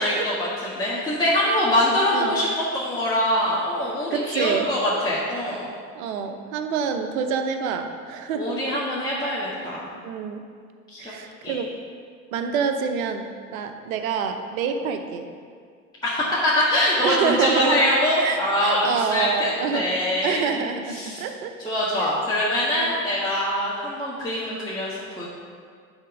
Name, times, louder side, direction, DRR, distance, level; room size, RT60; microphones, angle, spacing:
voice 1, 0.0-5.6 8.3-9.9 10.9-11.1 11.4-11.5 12.3-12.5 16.0-20.6 20.9-21.2 21.6-25.2, left 1 dB, 10° left, -9 dB, 1.5 m, -24 dB
voice 2, 4.1-4.7 5.9-8.6 10.0-10.4 11.0-11.7 12.3-15.3 17.0-17.9 18.2-19.9 20.2-21.7 22.0-22.2 22.8-22.9, right 6 dB, 75° right, 6 dB, 0.8 m, -27 dB
10.5 x 3.6 x 5.0 m, 2.1 s
hypercardioid pair, 85°, 41 cm